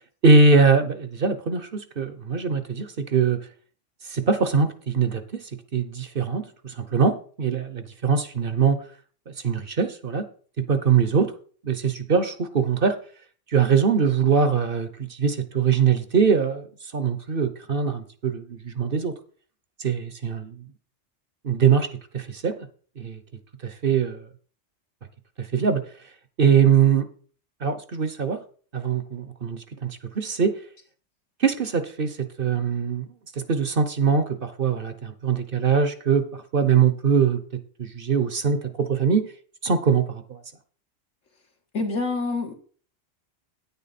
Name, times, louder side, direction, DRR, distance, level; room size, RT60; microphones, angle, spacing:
voice 1, 0.2-3.4 4.0-5.2 5.7-8.8 9.4-10.3 10.6-11.3 11.6-13.0 13.5-16.7 16.9-19.1 19.8-20.6 21.4-21.9 22.1-22.6 23.0-23.2 23.6-24.3 25.4-25.8 26.4-27.1 27.6-28.4 28.7-30.5 31.4-33.1 33.4-39.3 39.6-40.4, right 6 dB, 50° right, 11 dB, 1.0 m, -22 dB
voice 2, 41.7-42.5, left 3 dB, 75° left, 3 dB, 2.0 m, -26 dB
9.7 x 9.3 x 4.1 m, 0.43 s
omnidirectional pair, 1.3 m